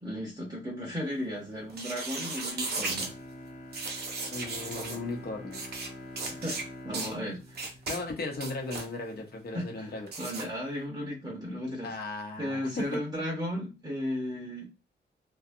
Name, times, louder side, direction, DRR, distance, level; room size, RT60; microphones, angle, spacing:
voice 1, 0.0-3.1 6.4-7.6 9.5-11.9 12.4-14.7, equal, 20° right, -2 dB, 0.7 m, -35 dB
sound 1, 1.7-3.1 3.7-5.0 5.5-5.9 6.2-6.6 6.9-7.1 7.5-8.0 8.3-8.9 10.1-10.4, right 3 dB, 60° right, 0.7 m, -35 dB
Bowed string instrument, 2.7-8.9 9.3-9.4, left 1 dB, 75° left, 1.1 m, -46 dB
voice 2, 4.3-5.6 7.9-10.1 11.8-13.0, left 3 dB, 55° left, 2 dB, 0.8 m, -36 dB
2.7 x 2.2 x 2.6 m, 0.28 s
wide cardioid pair, 130°, 19 cm